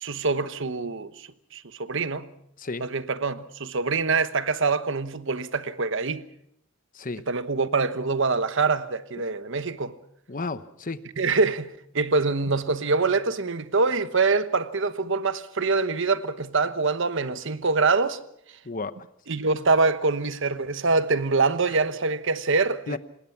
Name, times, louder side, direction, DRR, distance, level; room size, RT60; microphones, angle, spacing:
voice 1, 0.0-2.3 2.8-6.3 7.3-10.0 11.2-18.2 19.3-23.0, right 4 dB, 65° right, 1.1 m, -25 dB
voice 2, 6.9-7.2 9.1-9.2 10.3-11.0 18.6-19.1 21.7-21.8 22.9-23.0, left 3 dB, 40° left, 1.0 m, -33 dB
26.0 x 20.0 x 6.0 m
head